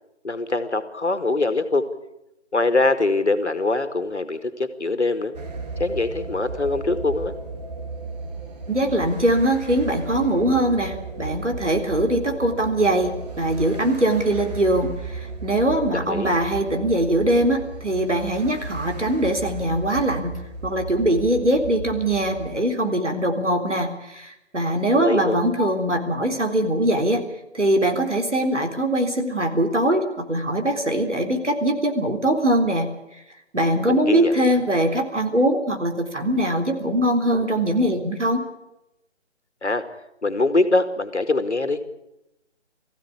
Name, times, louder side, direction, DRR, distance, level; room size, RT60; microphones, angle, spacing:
voice 1, 0.2-1.9 2.5-5.4 5.8-7.3 15.9-16.3 24.9-25.4 33.9-34.5 39.6-39.9 40.2-41.8, left 2 dB, 70° left, 9 dB, 2.3 m, -23 dB
sound 1, 5.3-22.5, right 3 dB, 35° right, 2.5 m, -35 dB
voice 2, 8.7-27.2 27.5-32.9 33.5-38.4, right 1 dB, 80° right, 4 dB, 3.8 m, -22 dB
19.5 x 15.5 x 8.5 m, 0.88 s
figure-of-eight pair, 155°, 35 cm